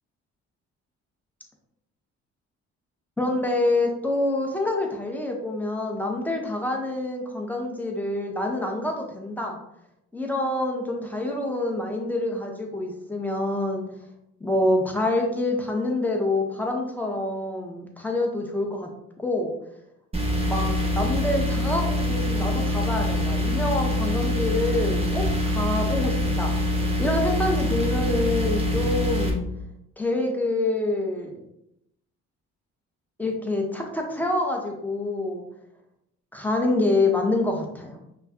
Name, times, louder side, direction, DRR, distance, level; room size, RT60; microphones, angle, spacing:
voice 1, 3.2-9.6 10.1-13.9 14.4-18.9 19.2-19.6 20.5-26.5 27.0-29.4 30.0-31.4 33.2-35.4 36.3-38.0, left 2 dB, 5° left, 1 dB, 1.1 m, -26 dB
computer recording recording, 20.1-29.3, left 1 dB, 20° right, 1.2 m, -25 dB
5.5 x 2.4 x 2.9 m, 0.80 s
hypercardioid pair, 55°, 33 cm